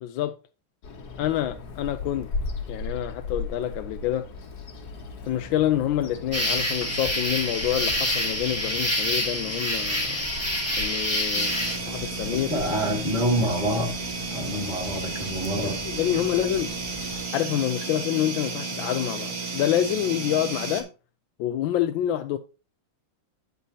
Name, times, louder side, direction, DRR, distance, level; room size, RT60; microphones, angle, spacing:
voice 1, 0.0-0.3 1.2-2.3 2.7-4.3 5.3-12.5 15.8-16.7 17.3-20.9 21.4-22.4, left 12 dB, 75° left, 1.3 m, -27 dB
Bird vocalization bird call bird song, 0.8-17.2, left 3 dB, 55° left, 1.6 m, -38 dB
sound 1, 6.3-11.8, left 1 dB, 5° right, 1.6 m, -27 dB
sound 2, 11.3-20.8, right 4 dB, 75° right, 2.7 m, -33 dB
voice 2, 12.3-14.0 14.3-15.8, equal, 25° left, 1.6 m, -27 dB
9.3 x 8.1 x 2.8 m
omnidirectional pair, 2.3 m